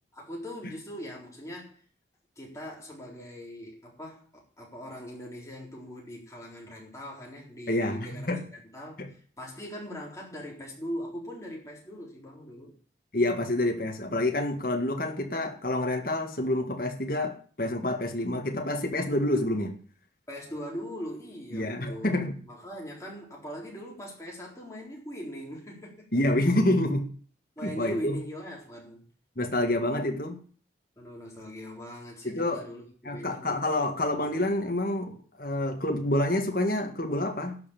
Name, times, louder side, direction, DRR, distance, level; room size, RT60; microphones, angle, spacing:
voice 1, 0.1-1.8 2.4-12.7 20.3-22.2 22.5-26.1 27.6-29.0 31.0-33.5, equal, 15° left, 3.8 m, -41 dB
voice 2, 7.7-8.4 9.0-9.1 13.1-19.7 21.5-22.4 26.1-27.1 27.6-28.2 29.4-30.4 32.2-32.7 33.1-37.6, left 1 dB, 50° left, 1.9 m, -28 dB
12.0 x 5.7 x 8.7 m
head